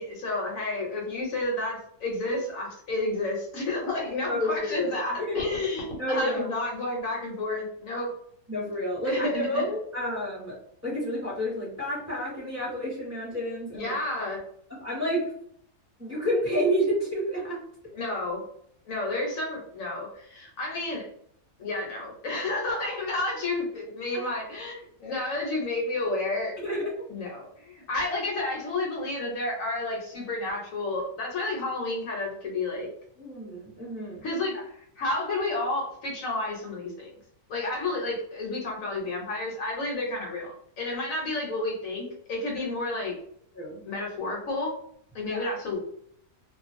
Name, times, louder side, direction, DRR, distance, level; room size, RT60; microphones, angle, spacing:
voice 1, 0.0-8.1 9.0-9.7 13.7-14.4 17.9-18.4 18.9-21.0 21.6-26.6 27.1-32.9 34.2-37.1 37.5-43.1 43.8-44.7 45.1-45.8, left 2 dB, 70° left, -1 dB, 1.0 m, -31 dB
voice 2, 4.3-5.4 6.0-6.5 8.5-10.6 10.8-13.9 14.8-15.2 16.0-17.6 26.6-26.9 33.2-34.2 43.5-43.8 45.2-45.5, equal, 15° right, -7 dB, 0.9 m, -29 dB
2.4 x 2.1 x 2.5 m, 0.67 s
omnidirectional pair, 1.6 m